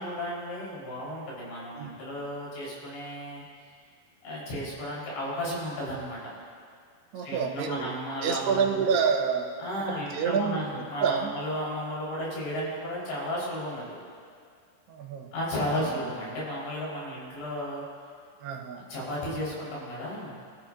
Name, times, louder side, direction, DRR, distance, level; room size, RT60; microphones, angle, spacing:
voice 1, 0.0-3.4 4.2-6.3 7.2-8.7 9.6-14.0 15.3-17.8 18.7-20.3, equal, 80° left, -6 dB, 6.6 m, -34 dB
voice 2, 7.1-8.0 8.2-9.5 9.8-11.3 14.9-15.3 15.7-16.0 18.4-18.8, right 6 dB, 80° right, 1 dB, 2.9 m, -28 dB
25.0 x 14.0 x 2.6 m, 2.2 s
omnidirectional pair, 4.9 m